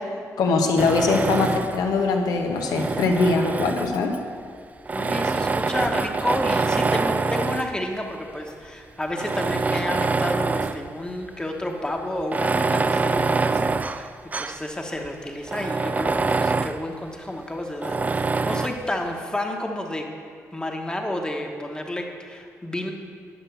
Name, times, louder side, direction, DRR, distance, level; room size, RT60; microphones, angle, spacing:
voice 1, 0.4-4.1, left 3 dB, 90° left, 3 dB, 1.1 m, -22 dB
Tools, 0.8-1.9 2.5-4.2 4.9-7.8 8.5-8.6 9.1-10.9 11.2-11.3 12.2-14.7 15.0-15.1 15.5-16.8 17.8-18.8, right 4 dB, 25° right, 0.3 m, -25 dB
voice 2, 4.9-14.1 14.4-20.1 20.5-22.9, left 1 dB, 15° left, 2 dB, 1.2 m, -30 dB
9.8 x 6.0 x 6.9 m, 2.2 s
cardioid pair, 90°, 6 cm